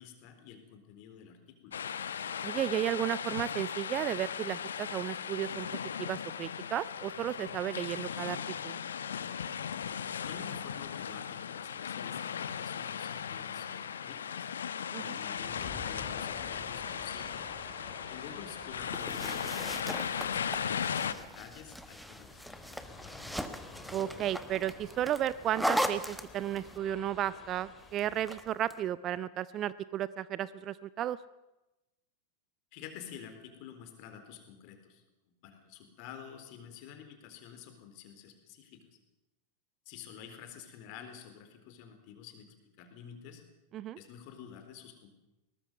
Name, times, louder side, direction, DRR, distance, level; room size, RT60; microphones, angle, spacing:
voice 1, 0.0-1.8 10.2-14.5 15.0-17.5 18.1-23.1 32.7-39.0 39.9-43.4 44.0-45.1, left 8 dB, 45° left, 7 dB, 3.9 m, -50 dB
sound 1, 1.7-21.1, left 8 dB, 65° left, 1.0 m, -37 dB
voice 2, 2.4-5.7 6.0-8.8 14.9-15.2 23.9-31.2 43.7-44.0, right 11 dB, 30° right, 18 dB, 0.6 m, -34 dB
sound 2, 15.4-28.5, left 3 dB, 15° left, 4.1 m, -51 dB
sound 3, 18.9-26.8 28.0-28.8, equal, ahead, 1.3 m, -38 dB
22.0 x 19.0 x 6.9 m, 0.98 s
figure-of-eight pair, 90°, 0 cm